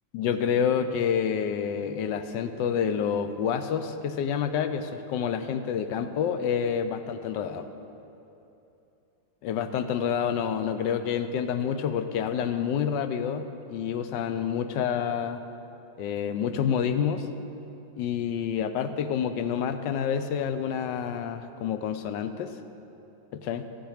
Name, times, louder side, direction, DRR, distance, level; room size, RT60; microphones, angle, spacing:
voice 1, 0.1-7.7 9.4-15.4 16.0-17.3 18.0-22.5 23.3-23.7, left 7 dB, 80° left, 9 dB, 1.3 m, -28 dB
15.5 x 7.8 x 5.0 m, 2.9 s
omnidirectional pair, 2.0 m